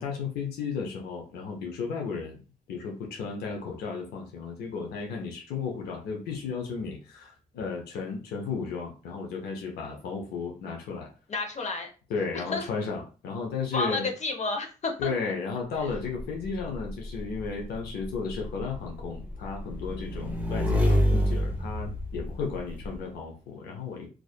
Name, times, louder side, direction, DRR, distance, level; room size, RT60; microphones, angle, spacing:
voice 1, 0.0-11.1 12.1-14.1 15.0-24.1, left 5 dB, 90° left, 1 dB, 0.6 m, -34 dB
voice 2, 11.3-11.9 12.3-12.7 13.7-15.3, left 3 dB, 45° left, 5 dB, 0.7 m, -31 dB
Motorcycle / Engine, 15.9-23.0, left 1 dB, 10° right, 0.9 m, -29 dB
2.4 x 2.4 x 2.2 m, 0.34 s
supercardioid pair, 55°, 16 cm